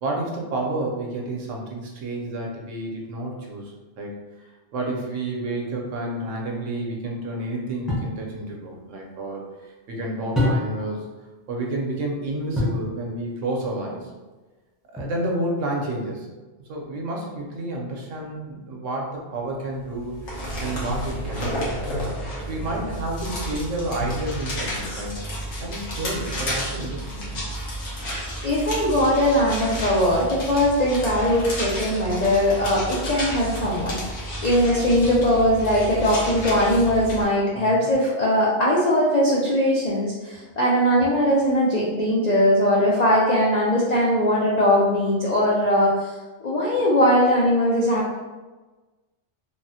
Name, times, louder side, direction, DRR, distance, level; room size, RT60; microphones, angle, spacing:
voice 1, 0.0-4.2 4.7-11.1 11.5-14.1 14.9-16.3 16.7-21.7 22.5-25.3 25.6-27.4 37.5-37.9, right 1 dB, 75° right, 0 dB, 1.0 m, -30 dB
sound 1, 7.9-8.2 10.3-11.0 12.5-12.9 15.0-15.5, left 1 dB, ahead, 0.4 m, -25 dB
sound 2, 19.9-37.2, equal, 85° left, 1.2 m, -31 dB
voice 2, 28.4-48.1, equal, 65° left, -5 dB, 0.4 m, -20 dB
3.6 x 2.0 x 2.7 m, 1.2 s
omnidirectional pair, 1.3 m